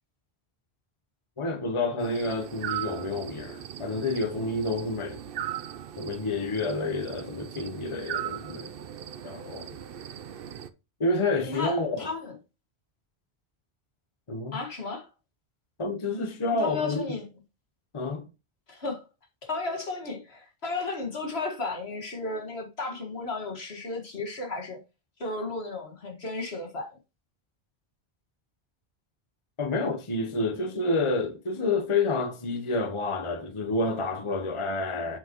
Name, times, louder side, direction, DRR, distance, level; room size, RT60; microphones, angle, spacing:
voice 1, 1.4-5.2 6.0-8.7 9.2-9.7 11.0-12.1 14.3-14.6 15.8-17.0 17.9-18.3 29.6-35.2, left 2 dB, 30° left, 0.9 m, -29 dB
sound 1, 2.0-10.7, right 10 dB, 65° right, 0.8 m, -38 dB
voice 2, 11.5-12.3 14.5-15.1 16.5-17.3 18.7-19.0 19.4-24.8 25.2-26.9, left 3 dB, 75° left, 2.0 m, -34 dB
7.8 x 5.8 x 3.0 m
omnidirectional pair, 1.1 m